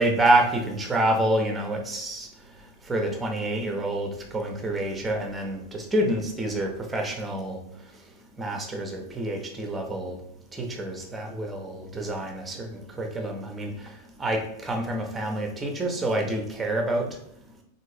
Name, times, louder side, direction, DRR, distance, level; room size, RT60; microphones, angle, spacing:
voice 1, 0.0-10.2 10.5-17.2, right 1 dB, 15° right, 2 dB, 0.7 m, -28 dB
3.6 x 2.5 x 3.1 m, 0.72 s
figure-of-eight pair, 90°, 0 cm